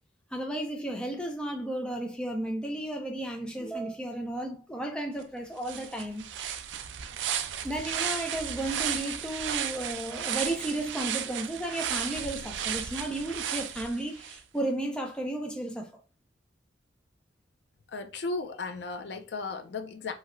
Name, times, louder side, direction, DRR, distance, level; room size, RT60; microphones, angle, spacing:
voice 1, 0.3-6.2 7.6-16.0, right 1 dB, 5° left, 0.4 m, -33 dB
sound 1, 5.2-5.3 5.6-14.4, right 9 dB, 85° right, 0.4 m, -34 dB
voice 2, 17.9-20.1, left 3 dB, 70° left, 0.4 m, -35 dB
3.0 x 2.7 x 2.5 m
head